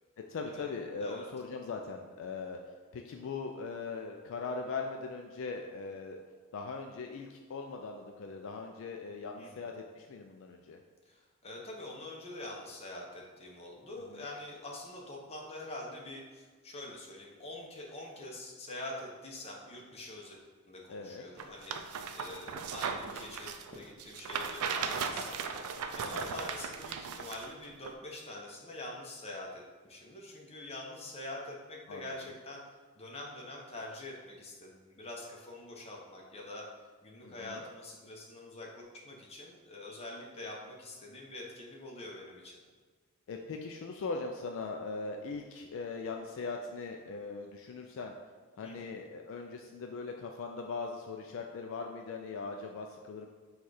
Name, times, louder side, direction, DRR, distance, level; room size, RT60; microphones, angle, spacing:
voice 1, 0.3-2.6 2.9-6.2 6.5-10.8 14.1-14.2 20.9-21.2 26.1-26.4 31.9-32.0 37.2-37.6 43.3-48.1 48.6-53.3, left 4 dB, 60° left, 3 dB, 0.3 m, -40 dB
voice 2, 11.1-20.4 20.7-25.4 25.9-32.6 33.0-36.7 37.0-42.6 48.6-49.0, left 2 dB, 30° left, -2 dB, 0.7 m, -45 dB
sound 1, 21.4-27.5 27.9-28.0, right 6 dB, 75° right, 0.3 m, -37 dB
4.2 x 2.4 x 4.7 m, 1.5 s
head